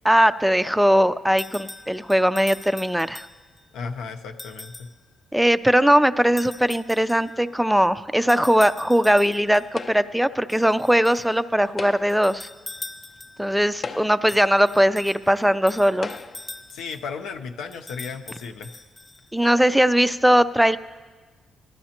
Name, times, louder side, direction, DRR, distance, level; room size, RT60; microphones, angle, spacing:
voice 1, 0.0-3.3 5.3-12.5 13.4-16.1 19.3-20.8, equal, 5° right, 13 dB, 0.4 m, -20 dB
sound 1, 1.4-3.6 4.4-5.0 6.4-7.4 8.3-9.7 10.5-11.3 12.1-13.5 14.3-17.1 17.7-19.5, left 2 dB, 20° left, 0.8 m, -42 dB
voice 2, 3.7-4.9 16.7-18.8, left 5 dB, 90° left, 4 dB, 0.7 m, -35 dB
sound 2, 9.8-10.3 11.6-12.3 13.2-13.3 13.7-14.4 15.3-15.4 16.0-16.5, left 4 dB, 50° left, 0.5 m, -36 dB
19.0 x 12.5 x 2.9 m, 1.3 s
cardioid pair, 90°, 0 cm